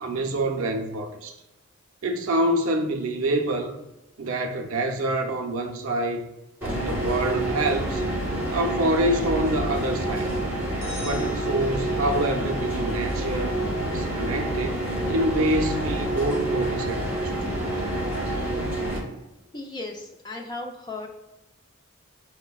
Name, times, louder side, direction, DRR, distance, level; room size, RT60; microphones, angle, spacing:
voice 1, 0.0-1.4 2.0-3.8 4.2-6.2 6.6-8.0 8.5-10.3 11.0-13.6 13.9-17.3, right 1 dB, 90° right, 0.5 m, -26 dB
sound 1, 6.6-19.0, right 1 dB, 10° right, 0.7 m, -27 dB
sound 2, 10.8-12.4, left 2 dB, 65° left, 0.8 m, -43 dB
voice 2, 19.5-21.1, left 2 dB, 20° left, 0.4 m, -36 dB
5.5 x 2.1 x 2.3 m
head